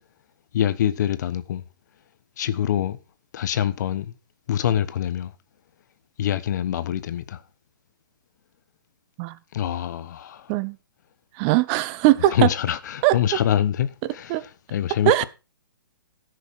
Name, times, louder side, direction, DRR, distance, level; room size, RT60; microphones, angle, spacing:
voice 1, 0.5-1.6 2.4-3.0 3.3-4.2 4.5-5.3 6.2-7.4 9.5-10.5 12.3-15.2, left 10 dB, 55° left, 1.1 m, -25 dB
voice 2, 11.4-12.5 13.0-13.1 14.3-14.4 15.1-15.2, right 16 dB, 30° right, 0.6 m, -20 dB
14.0 x 6.5 x 4.7 m
hypercardioid pair, 130°, 12 cm